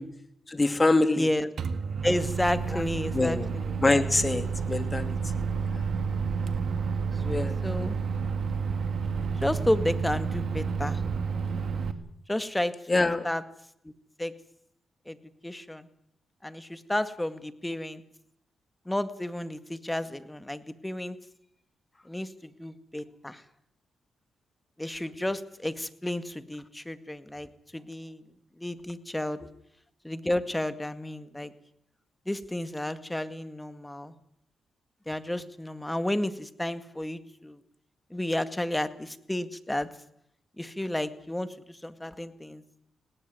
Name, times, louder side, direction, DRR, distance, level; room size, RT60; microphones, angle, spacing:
voice 1, 0.5-1.3 3.1-3.5 3.8-5.2 7.2-7.5 12.9-13.3, left 2 dB, 30° left, 9 dB, 2.7 m, -24 dB
voice 2, 1.2-1.5 2.0-3.8 7.6-8.0 9.4-11.0 12.3-13.4 13.8-13.9 14.2-14.3 15.1-15.2 15.4-15.9 16.4-18.0 18.9-21.2 22.1-23.4 24.8-28.2 28.6-29.4 30.0-31.5 32.3-34.1 35.1-37.6 38.1-39.9 40.6-42.6, left 1 dB, 10° left, 11 dB, 2.0 m, -32 dB
Microwave oven, 1.6-11.9, right 5 dB, 65° right, 1.9 m, -30 dB
19.0 x 18.0 x 9.6 m, 0.75 s
supercardioid pair, 50°, 0 cm